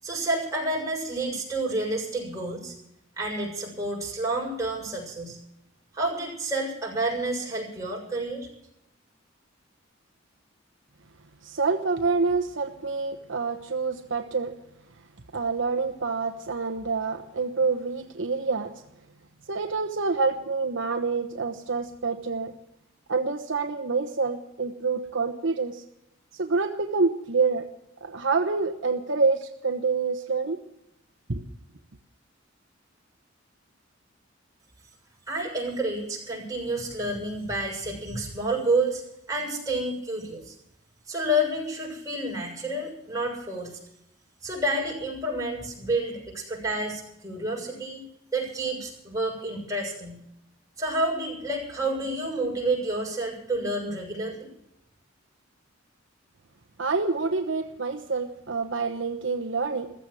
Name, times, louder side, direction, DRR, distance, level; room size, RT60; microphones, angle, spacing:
voice 1, 0.0-2.7 3.2-5.4 5.9-8.5 35.3-39.0 39.3-40.5 41.1-43.8 44.4-48.0 48.3-50.2 50.8-54.5, right 1 dB, 15° right, -2 dB, 6.9 m, -29 dB
voice 2, 11.4-14.5 15.3-18.7 19.5-22.5 23.1-25.8 26.4-27.7 28.0-30.6 31.3-31.4 56.8-59.9, right 4 dB, 70° right, 6 dB, 1.1 m, -27 dB
15.0 x 15.0 x 6.2 m, 0.80 s
head